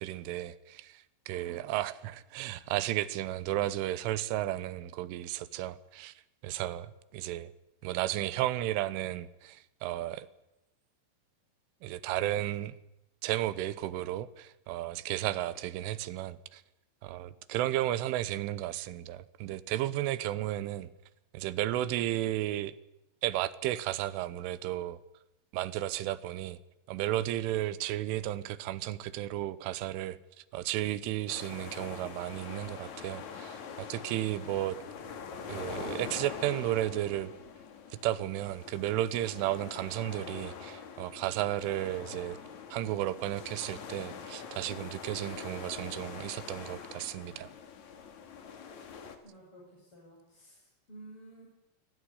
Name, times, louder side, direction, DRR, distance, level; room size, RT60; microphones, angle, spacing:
voice 1, 0.0-6.1 6.4-7.5 7.8-10.3 11.8-12.8 13.2-16.6 17.0-20.9 21.3-22.8 23.2-25.0 25.5-26.6 26.9-30.2 30.5-34.8 35.5-37.3 37.9-42.4 42.7-47.5, right 14 dB, 80° right, 3.4 m, -33 dB
voice 2, 1.3-1.7 49.2-51.5, right 2 dB, 25° left, 7.4 m, -53 dB
sound 1, 31.3-49.2, left 6 dB, 50° left, 2.6 m, -44 dB
22.0 x 17.0 x 9.9 m
omnidirectional pair, 5.6 m